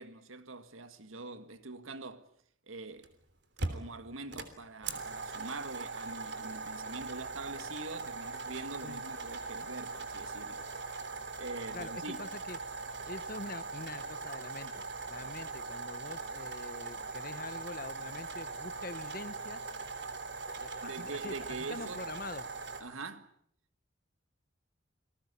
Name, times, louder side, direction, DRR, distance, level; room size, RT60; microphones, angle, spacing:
voice 1, 0.0-2.3 2.7-3.1 3.7-10.7 11.4-12.2 20.8-22.1 22.8-23.3, right 3 dB, 90° right, 1.9 m, -44 dB
sound 1, 3.0-3.1 3.6-22.8, right 4 dB, 60° right, 3.3 m, -41 dB
voice 2, 11.7-12.6 13.1-14.7 15.1-19.6 20.6-21.3 21.7-22.5, left 2 dB, 45° left, 1.3 m, -44 dB
28.5 x 19.5 x 8.4 m
head